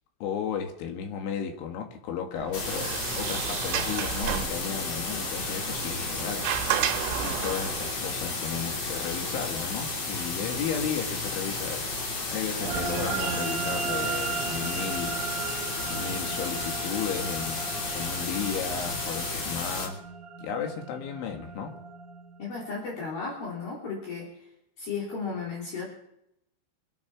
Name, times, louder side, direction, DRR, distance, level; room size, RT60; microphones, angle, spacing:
voice 1, 0.2-15.2 15.9-17.7 17.9-20.0 20.4-21.7, left 7 dB, 75° left, 3 dB, 4.2 m, -34 dB
Sliding door, 2.4-7.9, right 11 dB, 90° right, 3.5 m, -32 dB
sound 1, 2.5-19.9, left 3 dB, 35° left, 3.5 m, -33 dB
sound 2, 12.6-23.2, right 6 dB, 70° right, 3.8 m, -36 dB
voice 2, 22.4-24.3 24.8-25.9, left 4 dB, 50° left, -4 dB, 4.8 m, -34 dB
24.5 x 9.9 x 6.0 m, 0.81 s
omnidirectional pair, 5.6 m